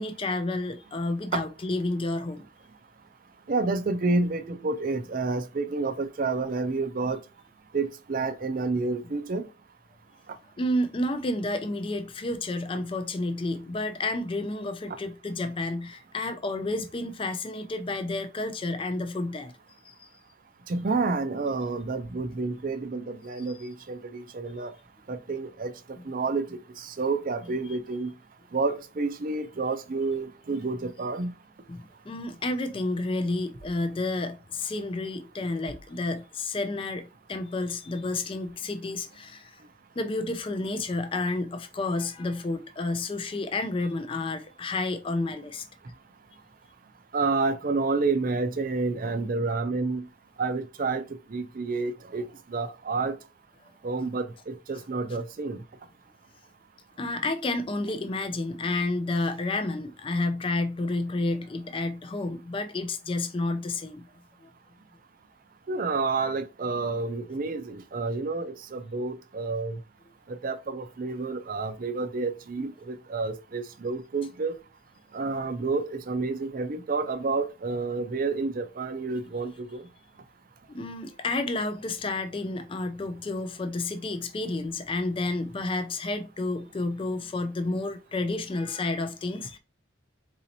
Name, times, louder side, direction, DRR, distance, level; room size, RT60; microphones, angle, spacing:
voice 1, 0.0-2.5 10.6-19.5 19.8-20.1 23.6-23.7 31.7-39.6 40.0-45.6 57.0-64.1 64.4-64.5 80.7-89.6, left 2 dB, 25° left, 0.4 m, -30 dB
voice 2, 3.5-7.2 7.7-9.5 14.9-15.0 20.7-24.7 25.1-25.7 26.0-28.1 28.5-31.3 47.1-50.1 50.4-51.0 51.3-53.2 53.8-55.6 65.7-69.8 70.3-74.5 75.1-79.8, right 3 dB, 45° right, 0.5 m, -29 dB
4.1 x 2.6 x 2.8 m
head